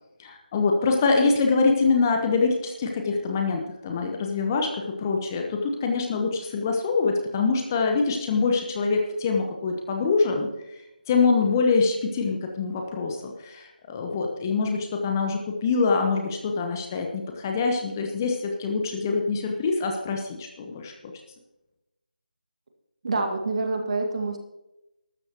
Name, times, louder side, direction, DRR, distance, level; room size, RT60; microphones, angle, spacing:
voice 1, 0.2-10.8 11.1-20.9, left 4 dB, 20° left, 3 dB, 1.1 m, -24 dB
voice 2, 23.0-24.4, right 3 dB, 40° right, 3 dB, 2.0 m, -26 dB
14.5 x 13.0 x 3.0 m, 0.94 s
figure-of-eight pair, 160°, 5 cm